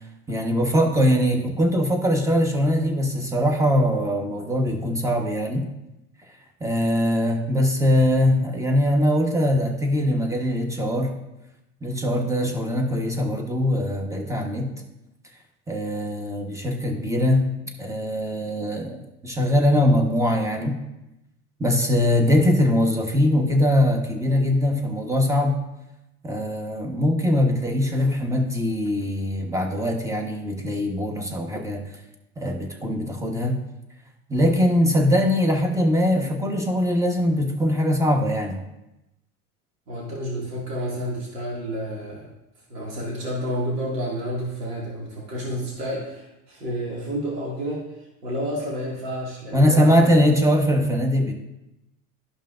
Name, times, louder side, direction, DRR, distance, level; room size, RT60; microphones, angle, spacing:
voice 1, 0.3-5.7 6.6-11.2 11.8-14.7 15.7-17.5 17.8-20.8 21.6-25.6 26.2-31.8 32.4-33.6 34.3-38.6 49.5-51.3, left 1 dB, 5° right, 3 dB, 1.1 m, -22 dB
voice 2, 39.9-42.3 42.7-47.8 48.2-50.1, equal, 85° right, -5 dB, 2.3 m, -30 dB
12.5 x 5.5 x 2.5 m, 0.93 s
hypercardioid pair, 90°, 46 cm